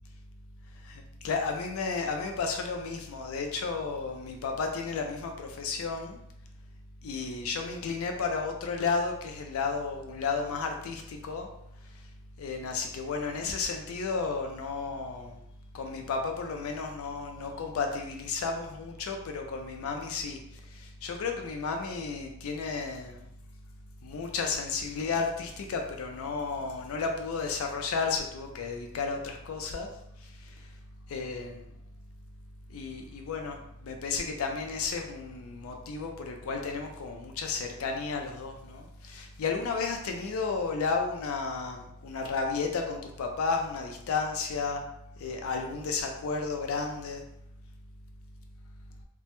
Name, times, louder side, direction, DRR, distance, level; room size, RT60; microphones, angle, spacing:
voice 1, 0.8-6.2 7.0-11.5 12.4-15.4 15.7-20.4 20.7-23.3 24.0-29.9 30.2-30.6 31.1-31.6 32.7-44.8 45.2-47.2, left 4 dB, 85° left, 3 dB, 0.4 m, -33 dB
2.2 x 2.0 x 2.8 m, 0.77 s
head